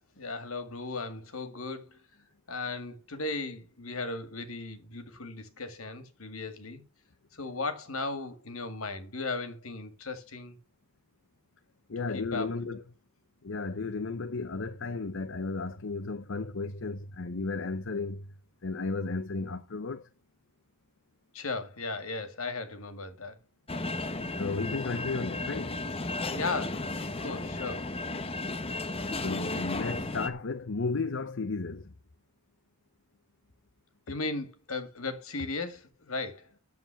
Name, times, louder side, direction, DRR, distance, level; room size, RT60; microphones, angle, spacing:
voice 1, 0.2-2.0 2.5-6.8 7.3-10.6 12.0-12.5 21.3-23.4 26.3-26.8 27.2-27.9 34.1-36.5, left 3 dB, 80° left, 2.1 m, -36 dB
voice 2, 11.9-12.8 13.4-18.3 18.6-20.1 24.4-25.8 29.2-31.9, left 3 dB, 65° left, 0.7 m, -34 dB
sound 1, 23.7-30.3, left 2 dB, 30° left, 1.0 m, -34 dB
9.6 x 7.3 x 5.9 m
head